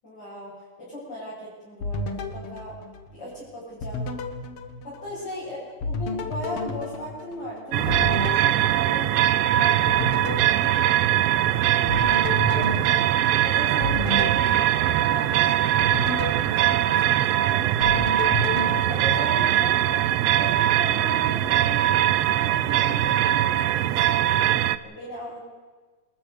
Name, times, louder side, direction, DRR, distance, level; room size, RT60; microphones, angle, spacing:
voice 1, 0.0-2.8 3.1-4.1 4.8-9.1 9.5-10.7 11.3-12.8 13.4-15.9 16.6-19.8 20.2-22.0 22.2-24.6 24.8-25.4, left 1 dB, 35° left, -10 dB, 8.7 m, -38 dB
sound 1, 1.8-3.4 3.8-5.4 5.8-9.5 9.9-11.5 11.9-15.3 15.8-17.4 17.8-19.8, left 3 dB, 55° left, 2.4 m, -33 dB
sound 2, 7.7-24.8, right 12 dB, 75° right, 1.5 m, -21 dB
27.0 x 14.0 x 6.9 m, 1.4 s
omnidirectional pair, 3.4 m